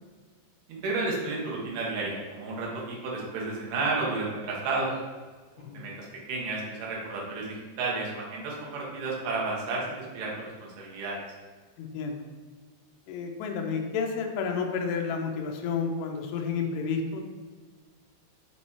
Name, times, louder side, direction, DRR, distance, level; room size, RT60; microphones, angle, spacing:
voice 1, 0.7-4.9 5.6-10.3 10.6-11.2, right 3 dB, 65° right, -4 dB, 2.2 m, -32 dB
voice 2, 11.8-12.2 13.1-17.2, left 5 dB, 80° left, 2 dB, 2.4 m, -31 dB
7.6 x 3.1 x 4.2 m, 1.4 s
omnidirectional pair, 5.4 m